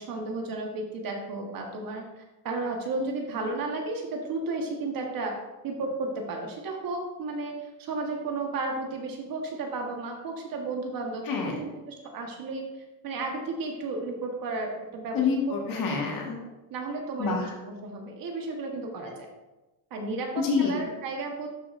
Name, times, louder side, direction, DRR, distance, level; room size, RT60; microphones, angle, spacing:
voice 1, 0.0-5.4 5.6-12.7 13.0-15.2 15.7-15.8 16.7-17.4 17.6-19.3 19.9-21.5, right 3 dB, 45° right, 1 dB, 1.4 m, -33 dB
voice 2, 15.1-16.4 17.2-17.5 20.4-20.8, left 5 dB, 45° left, -1 dB, 1.7 m, -27 dB
12.0 x 4.7 x 2.5 m, 1.1 s
cardioid pair, 115°, 46 cm